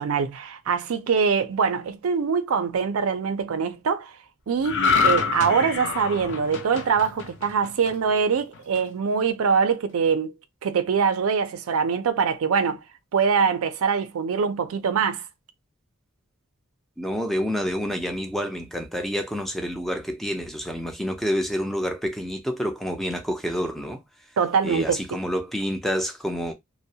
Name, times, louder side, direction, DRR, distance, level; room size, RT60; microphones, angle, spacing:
voice 1, 0.0-4.1 4.5-10.3 10.6-12.8 13.1-15.2 24.4-25.0, right 6 dB, 80° right, 0.4 m, -23 dB
sound 1, 4.6-8.1 8.5-8.8, left 5 dB, 60° left, 0.5 m, -25 dB
voice 2, 17.0-24.0 24.6-26.5, equal, ahead, 0.4 m, -28 dB
2.3 x 2.0 x 2.7 m
head